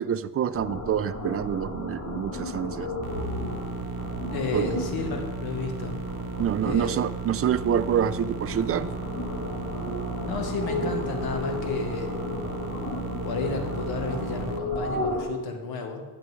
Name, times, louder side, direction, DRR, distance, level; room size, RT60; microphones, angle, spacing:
voice 1, 0.0-2.9 4.5-4.8 6.4-8.9, right 9 dB, 40° right, 14 dB, 0.5 m, -26 dB
sound 1, 0.5-15.2, left 2 dB, 50° left, 2.2 m, -34 dB
sound 2, 3.0-14.6, right 6 dB, 90° right, 0.7 m, -36 dB
voice 2, 4.3-6.0 6.6-7.0 10.3-12.2 13.2-16.0, left 4 dB, 90° left, 4 dB, 1.4 m, -32 dB
12.0 x 7.6 x 3.2 m, 1.3 s
cardioid pair, 85°, 36 cm